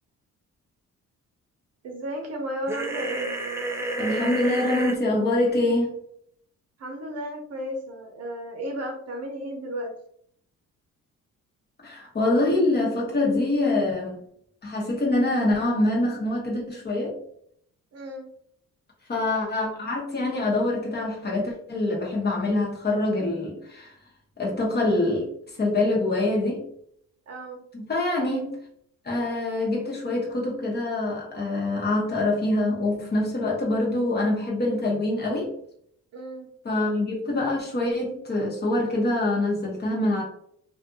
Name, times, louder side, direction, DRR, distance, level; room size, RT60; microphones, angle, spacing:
voice 1, 1.8-3.3 6.8-9.9 17.9-18.3 27.3-27.6 36.1-36.5, right 1 dB, 55° right, 2 dB, 0.8 m, -33 dB
sound 1, 2.7-5.0, right 2 dB, 10° right, 0.4 m, -29 dB
voice 2, 4.0-6.0 11.8-14.2 14.6-17.2 19.1-23.9 24.4-25.3 25.6-26.6 27.7-28.6 29.0-35.5 36.6-40.2, left 2 dB, 35° left, -3 dB, 1.1 m, -25 dB
2.5 x 2.5 x 2.6 m, 0.68 s
cardioid pair, 90°, 30 cm